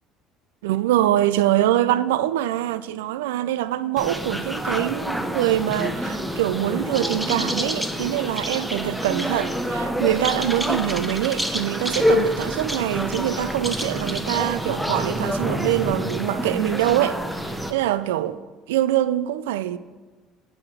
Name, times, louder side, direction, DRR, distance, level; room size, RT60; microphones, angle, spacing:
voice 1, 0.6-17.2 17.4-18.4 18.7-19.8, right 13 dB, 85° right, 0.4 m, -24 dB
sound 1, 4.0-17.7, equal, 5° right, 1.1 m, -27 dB
8.8 x 6.0 x 7.6 m
hypercardioid pair, 70°, 0 cm